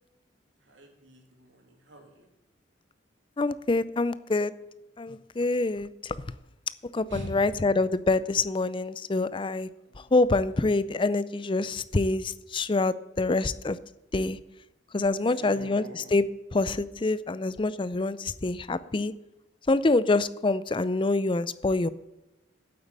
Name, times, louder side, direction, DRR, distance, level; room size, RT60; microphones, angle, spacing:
voice 1, 0.6-2.3 7.1-7.7 9.8-10.5 15.2-16.2, equal, 75° right, 2 dB, 2.7 m, -45 dB
voice 2, 3.4-4.5 5.0-6.2 6.9-9.7 10.1-13.8 14.1-14.4 14.9-16.2 16.5-19.1 19.7-21.9, left 3 dB, 25° left, 16 dB, 0.5 m, -26 dB
8.6 x 8.2 x 8.8 m, 0.99 s
head